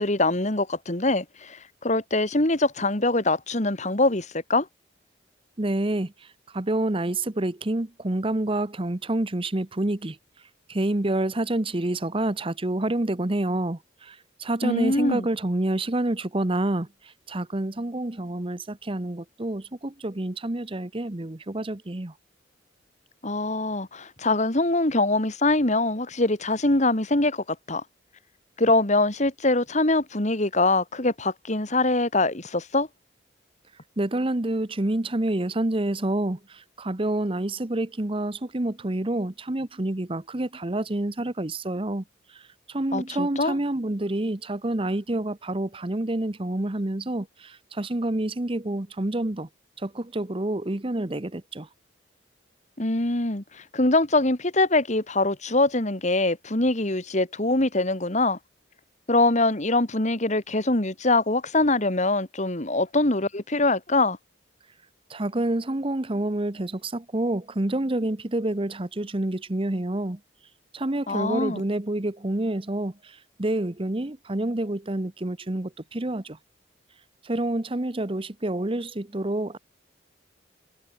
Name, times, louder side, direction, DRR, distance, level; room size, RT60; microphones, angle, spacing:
voice 1, 0.0-4.7 14.6-15.3 23.2-27.8 28.6-32.9 42.9-43.6 52.8-58.4 59.1-64.2 71.1-71.6, left 2 dB, 40° left, 2.2 m, -23 dB
voice 2, 5.6-6.1 6.5-10.2 10.7-16.9 17.3-22.1 34.0-42.0 42.3-42.4 42.7-49.5 49.8-51.7 65.1-70.2 70.7-76.4 77.2-79.6, right 1 dB, 30° right, 1.0 m, -28 dB
head